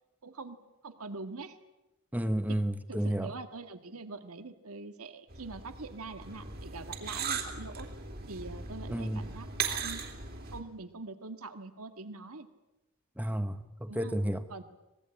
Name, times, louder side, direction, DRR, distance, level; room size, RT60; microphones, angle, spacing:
voice 1, 0.2-0.6 0.8-1.6 2.5-2.6 2.9-7.9 8.3-10.0 10.5-12.5 13.9-14.2 14.5-14.6, right 3 dB, 80° right, 1.7 m, -43 dB
voice 2, 2.1-3.3 8.9-9.2 13.2-14.4, right 1 dB, 5° right, 1.1 m, -31 dB
sound 1, 5.3-10.6, right 5 dB, 45° right, 3.1 m, -38 dB
25.0 x 20.0 x 8.7 m
head